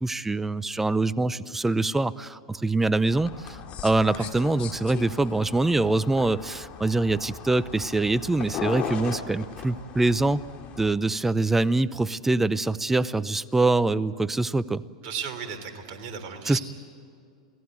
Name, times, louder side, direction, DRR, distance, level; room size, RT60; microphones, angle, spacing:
voice 1, 0.0-10.4 10.8-14.8 16.5-16.6, right 2 dB, 10° right, 17 dB, 0.7 m, -24 dB
sound 1, 3.1-10.9, left 6 dB, 35° left, 3.1 m, -38 dB
voice 2, 15.0-16.6, right 7 dB, 45° right, 4 dB, 3.5 m, -35 dB
28.0 x 18.0 x 8.0 m, 2.4 s
hypercardioid pair, 110°, 3 cm